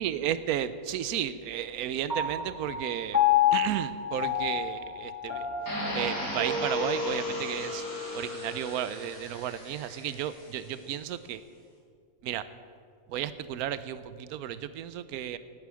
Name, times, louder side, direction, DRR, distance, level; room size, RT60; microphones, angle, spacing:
voice 1, 0.0-3.2 3.5-5.5 5.9-7.8 8.1-11.4 12.2-12.4 13.1-15.4, right 10 dB, 85° right, 13 dB, 1.1 m, -33 dB
Piano, 2.1-8.8, left 8 dB, 10° left, 2.6 m, -30 dB
sound 1, 5.7-10.7, left 1 dB, 80° left, 4.6 m, -37 dB
18.0 x 9.2 x 6.2 m, 2.2 s
omnidirectional pair, 1.5 m